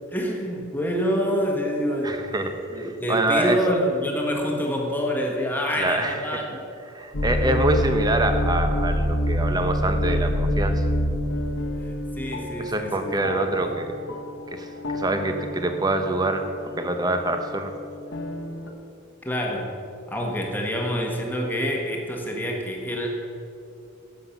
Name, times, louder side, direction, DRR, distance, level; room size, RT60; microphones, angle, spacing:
voice 1, 0.1-2.3 2.7-6.6 11.7-13.3 13.6-13.8 19.2-19.7 20.1-23.1, equal, 10° left, 0 dB, 1.3 m, -27 dB
voice 2, 2.0-3.6 5.8-6.2 6.9-10.8 12.6-13.9 14.5-14.7 14.9-16.4 16.8-17.7, right 2 dB, 20° right, 6 dB, 0.8 m, -25 dB
sound 1, 7.1-18.7, equal, 65° left, 1.0 m, -27 dB
11.0 x 7.7 x 5.8 m, 2.6 s
head